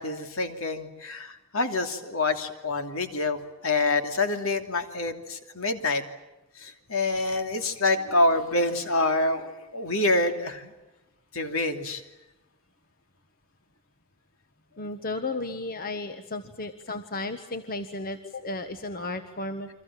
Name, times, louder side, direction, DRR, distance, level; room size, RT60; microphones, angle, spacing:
voice 1, 0.0-6.0 6.6-10.7 11.3-12.0, left 2 dB, 65° left, 7 dB, 2.9 m, -27 dB
voice 2, 14.8-19.7, left 2 dB, 45° left, 8 dB, 1.4 m, -34 dB
29.5 x 24.5 x 7.6 m, 1.0 s
head